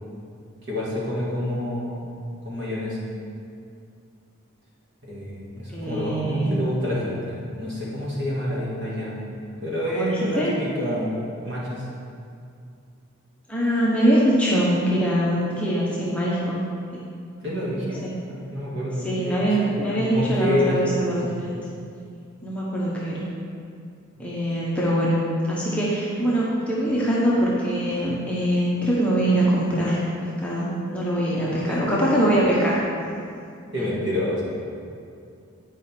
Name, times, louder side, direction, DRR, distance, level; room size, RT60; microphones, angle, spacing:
voice 1, 0.7-2.1 2.5-3.0 5.0-9.1 9.6-11.2 11.4-11.8 17.4-18.0 18.3-21.0 21.3-21.5 31.6-31.8 33.7-34.4, left 1 dB, 55° right, -6 dB, 1.9 m, -28 dB
voice 2, 5.7-6.6 9.9-10.5 13.5-16.6 17.4-18.1 19.0-21.6 22.4-23.3 24.2-25.2 25.5-32.8 33.8-33.9, right 1 dB, 5° left, -7 dB, 1.0 m, -23 dB
9.3 x 5.0 x 4.4 m, 2.4 s
head